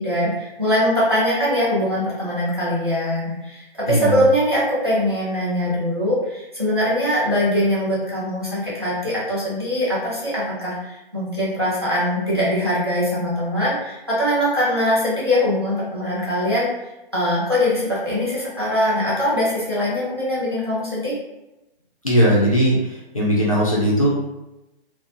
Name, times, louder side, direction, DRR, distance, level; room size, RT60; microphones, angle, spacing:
voice 1, 0.0-16.7 17.1-21.1, equal, 25° right, -9 dB, 0.5 m, -22 dB
voice 2, 3.9-4.2 22.0-24.1, equal, 35° left, -5 dB, 0.4 m, -18 dB
2.5 x 2.0 x 2.5 m, 0.95 s
hypercardioid pair, 180°, 31 cm